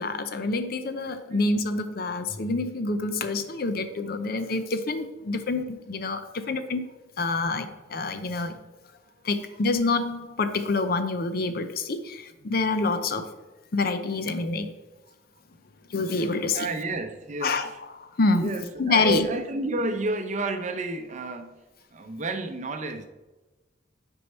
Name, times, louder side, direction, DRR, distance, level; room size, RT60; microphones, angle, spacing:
voice 1, 0.0-6.9 7.2-8.6 9.2-13.3 13.7-14.7 15.9-16.7 17.4-17.7 18.0-18.5 18.8-19.3, left 3 dB, 55° left, 10 dB, 0.6 m, -27 dB
voice 2, 16.5-17.8 18.3-21.6 21.9-23.1, right 2 dB, 40° right, 7 dB, 0.7 m, -31 dB
6.4 x 4.6 x 5.5 m, 1.1 s
head